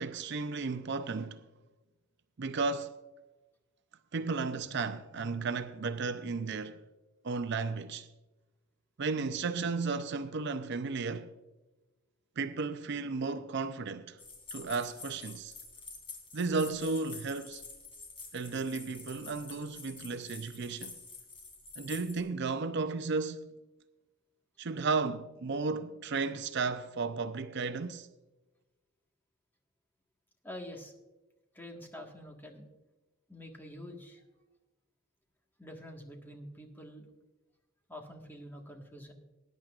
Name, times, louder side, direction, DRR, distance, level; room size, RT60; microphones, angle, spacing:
voice 1, 0.0-1.4 2.4-3.0 4.1-6.8 7.2-8.1 9.0-11.3 12.4-14.2 14.5-15.5 16.3-17.6 18.3-21.0 21.8-23.5 24.6-28.1, right 4 dB, 60° right, 0.5 m, -34 dB
sound 1, 14.2-22.2, left 4 dB, 30° left, 3.0 m, -48 dB
voice 2, 30.4-30.9 31.5-32.6 33.3-34.2 35.6-37.1 37.9-39.1, left 1 dB, 10° left, 1.6 m, -46 dB
20.0 x 10.0 x 2.5 m
head